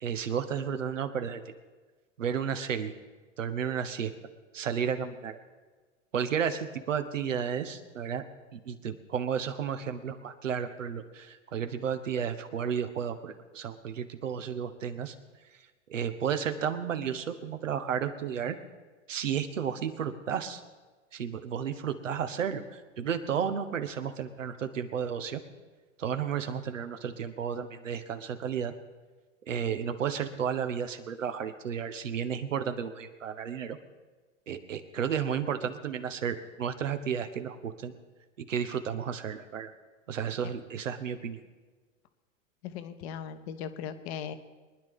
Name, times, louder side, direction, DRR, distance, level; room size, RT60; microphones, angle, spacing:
voice 1, 0.0-1.5 2.2-2.9 3.4-4.1 4.5-5.4 6.1-8.2 8.5-15.1 15.9-18.6 19.1-20.6 21.1-25.4 26.0-28.7 29.5-33.8 34.5-37.9 38.4-39.7 40.1-41.4, right 7 dB, 75° right, 9 dB, 1.2 m, -32 dB
voice 2, 42.6-44.3, left 8 dB, 55° left, 10 dB, 1.2 m, -38 dB
23.5 x 10.5 x 3.7 m, 1.3 s
figure-of-eight pair, 85°, 38 cm